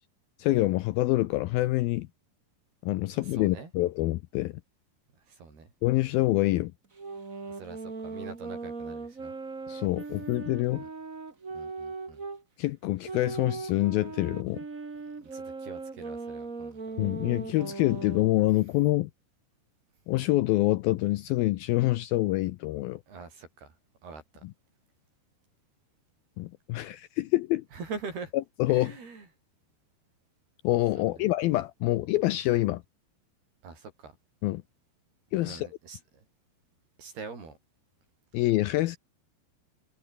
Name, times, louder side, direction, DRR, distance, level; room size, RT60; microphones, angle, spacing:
voice 1, 0.4-2.1 2.8-4.5 5.8-6.7 9.7-10.9 12.6-14.6 17.0-19.1 20.1-23.0 24.4-24.5 26.4-27.6 28.6-28.9 30.6-32.8 34.4-34.6 35.3-35.7 38.3-39.0, left 17 dB, 80° left, 2.2 m, -26 dB
voice 2, 3.1-3.7 5.3-5.7 7.5-9.3 10.8-10.9 11.5-12.2 15.2-16.8 23.1-23.7 24.0-24.4 27.7-28.3 28.7-29.3 31.0-31.3 33.6-34.1 35.4-36.0 37.0-37.6, right 4 dB, 65° right, 8.8 m, -43 dB
sound 1, 6.9-12.4 13.0-18.4, right 4 dB, 25° right, 2.3 m, -39 dB
omnidirectional pair, 4.9 m